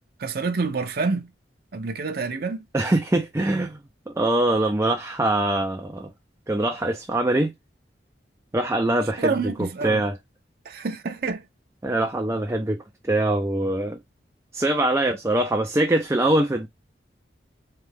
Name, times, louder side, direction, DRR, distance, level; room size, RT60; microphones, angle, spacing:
voice 1, 0.2-1.3 1.7-2.7 9.2-10.0 10.6-11.4, right 4 dB, 60° right, 0.6 m, -27 dB
voice 2, 2.7-3.8 4.1-6.1 6.5-7.5 8.5-9.3 9.6-10.1 11.8-12.8 13.0-14.0 14.5-16.7, right 1 dB, 15° right, 0.5 m, -23 dB
3.8 x 3.4 x 3.3 m
head